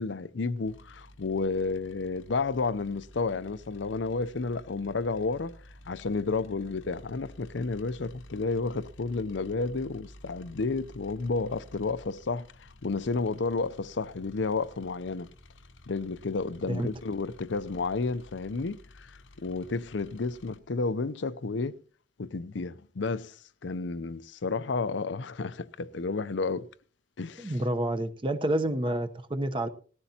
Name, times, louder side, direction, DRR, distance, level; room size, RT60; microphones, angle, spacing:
voice 1, 0.0-5.6 5.8-15.3 15.9-21.8 22.2-26.7 27.2-27.6, left 4 dB, 70° left, 0.6 m, -31 dB
sound 1, 0.6-20.6, left 1 dB, 85° left, 1.1 m, -52 dB
voice 2, 27.4-29.7, right 1 dB, 25° right, 0.8 m, -29 dB
19.0 x 14.0 x 2.8 m
head